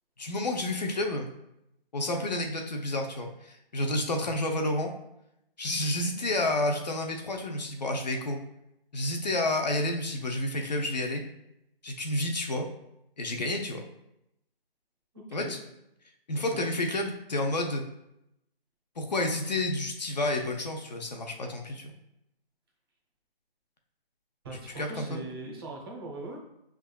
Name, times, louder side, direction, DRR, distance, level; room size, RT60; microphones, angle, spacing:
voice 1, 0.2-1.3 1.9-4.9 5.6-8.4 8.9-11.2 11.8-12.7 13.2-13.8 15.3-15.6 16.3-17.8 19.0-21.9 24.8-25.2, left 1 dB, 45° left, 2 dB, 0.5 m, -30 dB
voice 2, 15.1-15.5 16.3-16.7 24.4-26.4, right 2 dB, 25° right, -1 dB, 0.9 m, -40 dB
5.4 x 3.5 x 2.2 m, 0.84 s
figure-of-eight pair, 155°, 30 cm